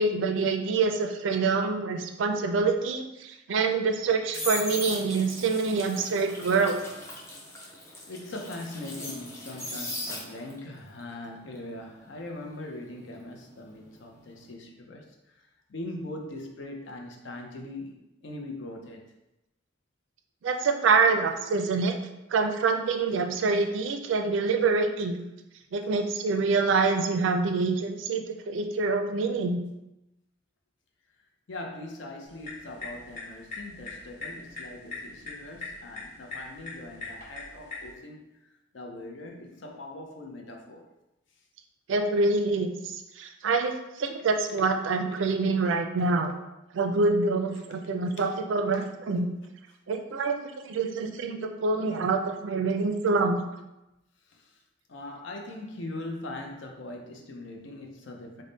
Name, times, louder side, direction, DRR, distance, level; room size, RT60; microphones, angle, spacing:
voice 1, 0.0-6.8 20.4-22.0 22.3-25.2 25.7-29.6 41.9-46.3 46.7-49.3 49.9-50.4 50.6-53.4, right 4 dB, 75° right, 5 dB, 0.4 m, -26 dB
sound 1, 3.9-10.6 11.0-13.9 14.1-14.5, left 1 dB, 15° left, 0.6 m, -39 dB
voice 2, 8.1-18.0 18.2-19.1 23.5-23.7 31.5-38.3 38.7-40.9 47.6-47.7 48.2-48.3 48.7-48.9 54.2-54.6 54.9-58.4, left 2 dB, 65° left, 2 dB, 0.6 m, -41 dB
sound 2, 32.2-37.9, left 3 dB, 40° left, 1.1 m, -42 dB
3.4 x 2.1 x 3.9 m, 0.94 s
head